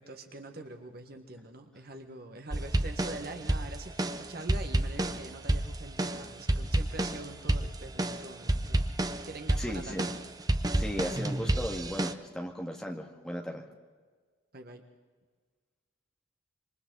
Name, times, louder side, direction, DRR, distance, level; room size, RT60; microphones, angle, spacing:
voice 1, 0.0-8.9 9.2-10.1 14.5-14.8, right 2 dB, 50° right, 5 dB, 1.6 m, -44 dB
sound 1, 2.5-12.1, right 1 dB, 20° right, 0.7 m, -30 dB
voice 2, 9.6-10.1 10.7-13.6, equal, 5° left, -1 dB, 2.0 m, -36 dB
26.5 x 25.0 x 4.0 m, 1.5 s
head